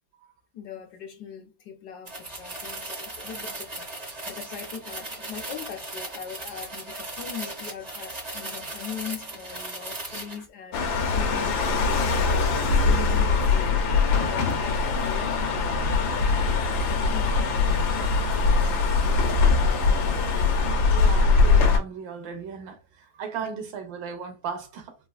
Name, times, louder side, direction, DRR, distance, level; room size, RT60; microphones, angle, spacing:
voice 1, 0.5-3.9 4.3-13.8 14.1-16.2 16.9-18.6 19.0-19.5, left 7 dB, 70° left, 1.0 m, -41 dB
sound 1, 2.1-10.4, right 2 dB, 55° right, 0.4 m, -37 dB
sound 2, 10.7-21.8, left 4 dB, 85° left, 1.4 m, -22 dB
voice 2, 20.8-25.0, right 6 dB, 75° right, 1.4 m, -36 dB
4.1 x 2.3 x 2.3 m
omnidirectional pair, 2.1 m